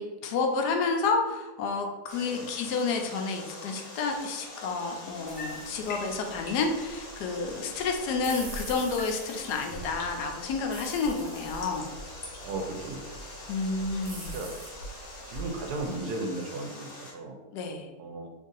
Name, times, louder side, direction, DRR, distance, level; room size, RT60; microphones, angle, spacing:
voice 1, 0.0-11.9 13.5-14.3 17.5-17.9, left 4 dB, 85° left, 4 dB, 1.1 m, -30 dB
Water, 2.1-17.1, left 1 dB, 40° left, 0.6 m, -45 dB
sound 1, 4.1-8.5 8.8-12.5, left 2 dB, 60° left, 1.2 m, -48 dB
sound 2, 5.3-16.0, right 2 dB, 45° right, 1.0 m, -44 dB
voice 2, 12.4-13.2 14.3-14.5 15.3-17.4 18.0-18.3, right 2 dB, 75° right, 3 dB, 1.1 m, -35 dB
3.1 x 2.6 x 3.8 m, 1.1 s
omnidirectional pair, 1.7 m